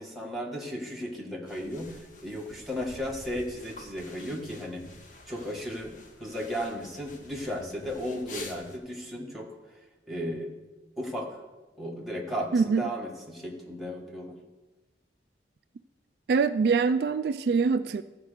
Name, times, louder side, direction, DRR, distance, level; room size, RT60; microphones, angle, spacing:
voice 1, 0.0-4.8 5.3-9.8 10.1-10.5 11.0-11.4 11.8-14.3, equal, ahead, -3 dB, 1.5 m, -35 dB
sound 1, 1.5-8.8, left 2 dB, 45° left, 1.0 m, -48 dB
voice 2, 12.5-12.9 16.3-18.0, right 5 dB, 60° right, 11 dB, 0.3 m, -24 dB
14.0 x 5.0 x 6.6 m, 1.2 s
head